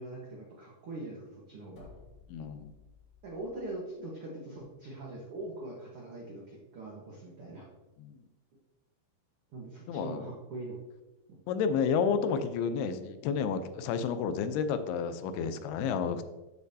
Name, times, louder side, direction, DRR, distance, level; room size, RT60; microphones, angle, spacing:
voice 1, 0.0-1.9 3.2-7.7 9.5-10.8 11.3-11.4, right 2 dB, 80° right, -3 dB, 1.2 m, -42 dB
sound 1, 1.7-3.8, left 4 dB, 65° left, 3.2 m, -56 dB
voice 2, 2.3-2.7 8.0-8.2 9.9-10.3 11.5-16.2, left 6 dB, 85° left, 10 dB, 2.7 m, -31 dB
13.5 x 6.6 x 2.7 m, 1.1 s
omnidirectional pair, 4.6 m